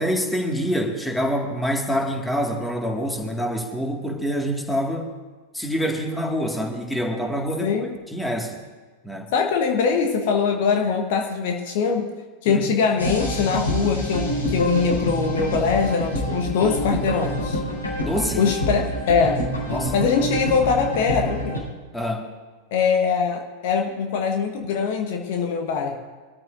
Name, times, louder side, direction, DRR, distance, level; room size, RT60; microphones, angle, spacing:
voice 1, 0.0-5.1 5.5-7.7 8.1-8.6 9.0-9.3 12.5-12.6 18.0-18.4 19.7-19.9 20.2-20.4 21.9-22.3, equal, 5° left, 1 dB, 2.0 m, -26 dB
voice 2, 7.6-7.9 9.3-12.2 12.4-17.6 18.4-19.4 19.9-21.7 22.7-26.0, left 5 dB, 50° left, 5 dB, 1.1 m, -22 dB
sound 1, 13.0-21.6, equal, 75° left, 4.8 m, -27 dB
23.0 x 13.5 x 2.6 m, 1.4 s
figure-of-eight pair, 90°, 0 cm